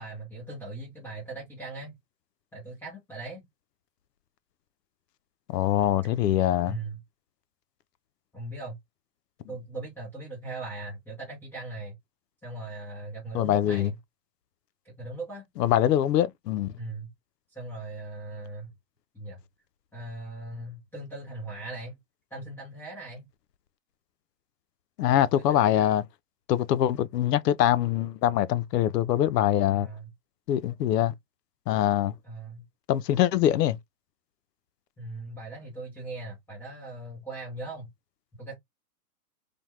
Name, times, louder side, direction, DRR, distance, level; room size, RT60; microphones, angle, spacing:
voice 1, 0.0-2.0 2.5-3.4 6.6-7.0 8.3-8.8 9.5-11.9 12.4-14.0 14.8-15.5 16.8-17.1 17.5-18.7 19.1-19.4 19.9-22.0 22.3-23.3 25.3-25.9 29.7-30.1 32.2-32.6 35.0-37.9 38.4-38.5, right 2 dB, 5° left, 0.7 m, -39 dB
voice 2, 5.5-6.7 13.3-13.9 15.6-16.7 25.0-26.0 26.5-29.9 30.5-31.1 31.7-32.1 32.9-33.8, left 11 dB, 80° left, 0.6 m, -23 dB
3.3 x 2.2 x 3.0 m
hypercardioid pair, 145°, 48 cm